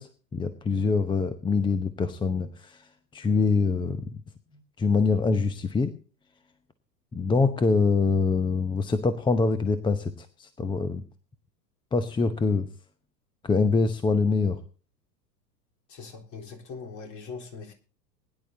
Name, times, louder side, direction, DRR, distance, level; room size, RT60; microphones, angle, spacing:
voice 1, 0.0-2.9 3.1-4.2 4.8-5.9 7.1-11.0 11.9-12.7 13.4-14.6, left 4 dB, 10° left, 11 dB, 0.7 m, -24 dB
voice 2, 15.9-17.7, left 4 dB, 35° left, 2 dB, 3.8 m, -41 dB
21.0 x 10.5 x 2.7 m, 0.38 s
figure-of-eight pair, 95°, 49 cm